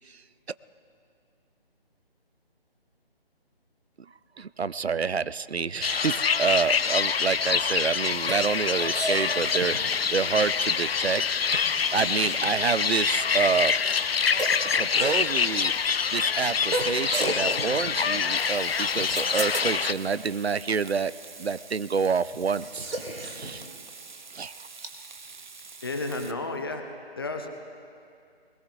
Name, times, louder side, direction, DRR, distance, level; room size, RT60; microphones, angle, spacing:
voice 1, 4.4-11.2 11.5-13.7 14.6-15.7 16.1-21.1 21.4-22.9 23.2-23.6 24.3-24.5, right 5 dB, 90° right, 17 dB, 0.5 m, -28 dB
sound 1, 5.8-19.9, left 6 dB, 70° left, 0.5 m, -26 dB
sound 2, 8.1-24.9, right 2 dB, 70° right, 1.9 m, -37 dB
Frying (food), 18.4-26.3, right 4 dB, 50° right, 0.7 m, -46 dB
voice 2, 25.8-26.8 27.1-27.5, left 2 dB, 25° left, 5 dB, 0.8 m, -32 dB
21.5 x 18.5 x 2.6 m, 2.4 s
figure-of-eight pair, 150°, 31 cm